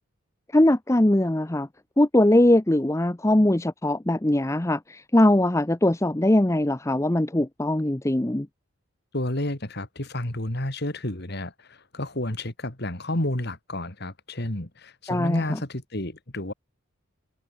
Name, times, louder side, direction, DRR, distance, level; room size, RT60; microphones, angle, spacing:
voice 1, 0.5-1.7 2.0-8.5 15.1-15.6, left 1 dB, 15° left, 0.6 m, -21 dB
voice 2, 9.1-16.5, left 1 dB, 50° left, 2.7 m, -31 dB
head